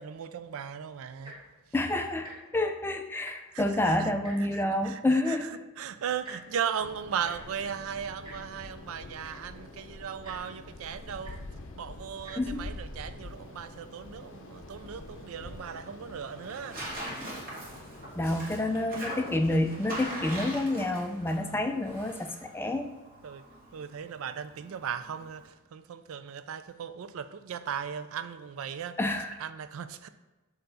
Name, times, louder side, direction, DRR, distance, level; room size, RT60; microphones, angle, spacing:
voice 1, 0.0-1.4 3.5-4.1 4.5-5.5 5.8-11.4 11.7-17.7 23.2-29.0 29.4-30.1, right 8 dB, 65° right, 0.3 m, -37 dB
Tick-tock, 1.1-1.5 2.2-2.4 2.7-2.8 3.1-3.6 4.2-4.4 5.2-5.4 6.2-6.4 7.2-7.3 8.2-8.4 8.9-9.0 9.2-9.5 10.2-10.4 11.2-11.4 12.1-12.3 13.1-13.2, right 2 dB, 20° right, 1.5 m, -46 dB
voice 2, 1.7-5.5 12.4-12.7 18.2-22.9 29.0-29.3, left 1 dB, 10° left, 0.3 m, -28 dB
sound 1, 6.8-18.4, left 2 dB, 55° left, 0.6 m, -46 dB
Tearing, 13.2-25.5, right 1 dB, 40° right, 1.7 m, -43 dB
6.8 x 3.8 x 4.0 m
head